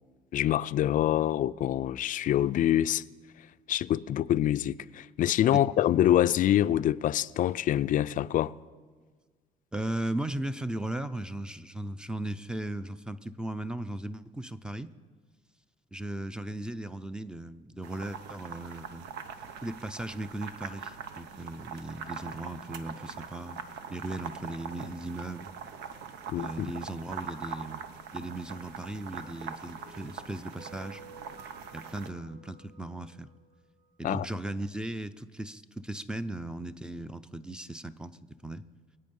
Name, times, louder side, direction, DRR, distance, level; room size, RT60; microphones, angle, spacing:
voice 1, 0.3-3.0 3.7-8.5 26.3-26.7 34.0-34.3, left 12 dB, 50° left, 0.4 m, -25 dB
voice 2, 9.7-14.9 15.9-19.0 19.6-23.6 23.9-25.5 26.3-27.8 28.1-31.0 31.7-33.3 34.0-38.6, right 1 dB, 5° right, 0.5 m, -37 dB
sound 1, 17.8-32.1, right 6 dB, 80° right, 0.9 m, -42 dB
sound 2, 29.8-34.1, right 4 dB, 55° right, 2.1 m, -53 dB
24.0 x 8.6 x 5.4 m
cardioid pair, 110°, 17 cm